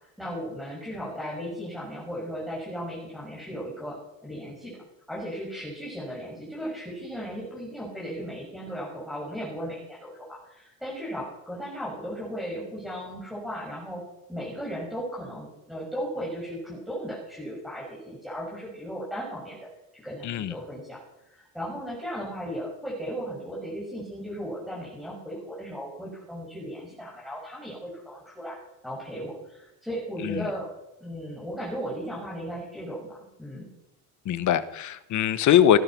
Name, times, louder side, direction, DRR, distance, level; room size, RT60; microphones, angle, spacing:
voice 1, 0.2-4.0 4.2-4.7 5.1-14.0 14.3-19.6 19.9-21.0 21.2-28.6 28.8-30.7 31.0-33.7, equal, ahead, -6 dB, 6.5 m, -36 dB
voice 2, 20.2-20.5 30.2-30.5 34.2-35.8, left 10 dB, 45° left, 14 dB, 1.2 m, -22 dB
17.5 x 11.5 x 6.1 m, 0.88 s
cardioid pair, 140°, 42 cm